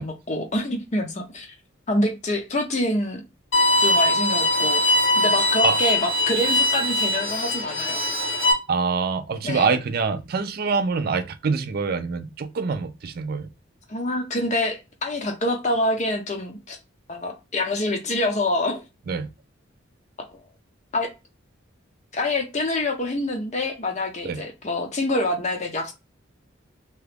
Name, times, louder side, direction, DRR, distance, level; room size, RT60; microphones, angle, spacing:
voice 1, 0.0-1.5 1.9-3.2 3.8-4.8 5.1-8.0 9.4-9.7 13.9-16.8 17.1-18.8 20.9-21.1 22.1-25.9, left 1 dB, 35° left, 0.6 m, -26 dB
Bowed string instrument, 3.5-8.5, left 1 dB, 65° left, 1.0 m, -21 dB
voice 2, 8.7-13.5 19.1-19.3 24.2-24.4, right 5 dB, 45° right, 0.4 m, -25 dB
2.9 x 2.3 x 3.2 m
head